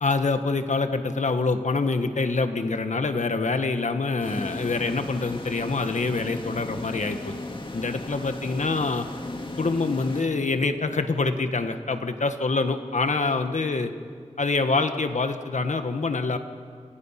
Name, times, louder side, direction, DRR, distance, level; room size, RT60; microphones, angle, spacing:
voice 1, 0.0-7.3 7.7-9.1 9.6-13.9 14.4-16.4, left 3 dB, 90° left, 7 dB, 1.5 m, -25 dB
sound 1, 4.2-11.0, left 2 dB, 45° left, 2.3 m, -36 dB
28.5 x 26.5 x 5.9 m, 2.2 s
wide cardioid pair, 65°, 12 cm